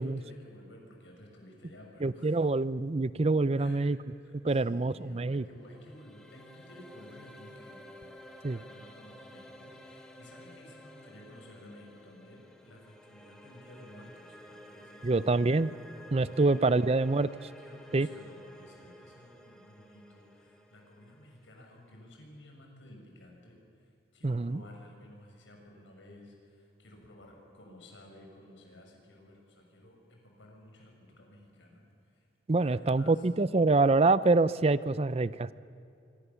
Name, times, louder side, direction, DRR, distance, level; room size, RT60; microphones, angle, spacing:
voice 1, 0.0-2.4 3.6-3.8 4.2-8.1 8.5-15.4 16.3-16.6 17.6-33.3, left 1 dB, 85° left, 1 dB, 6.6 m, -54 dB
voice 2, 2.0-4.0 4.4-5.4 8.4-8.6 15.0-15.7 16.1-17.3 17.9-18.1 24.2-24.6 32.5-35.5, right 3 dB, 35° right, 16 dB, 0.5 m, -26 dB
sound 1, 5.3-22.3, equal, 5° left, 2.7 m, -53 dB
25.5 x 25.5 x 7.1 m, 2.5 s
head